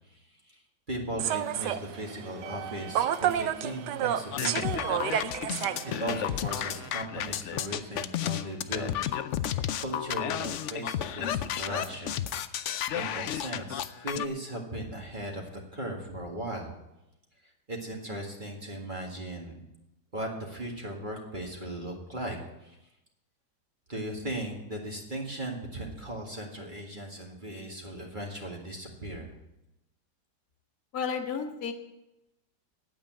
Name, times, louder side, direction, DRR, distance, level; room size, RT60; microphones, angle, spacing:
voice 1, 0.1-0.6 0.9-4.9 5.8-8.9 9.4-12.2 12.9-16.7 17.7-19.6 20.1-22.8 23.9-29.3, right 1 dB, 30° right, 0 dB, 2.0 m, -37 dB
Human voice / Subway metro underground, 1.2-6.9, right 10 dB, 75° right, 1.2 m, -31 dB
sound 1, 4.3-14.3, left 10 dB, 80° left, 0.6 m, -32 dB
voice 2, 30.9-31.7, left 6 dB, 60° left, 4 dB, 1.6 m, -32 dB
9.0 x 8.8 x 9.0 m, 0.92 s
omnidirectional pair, 1.9 m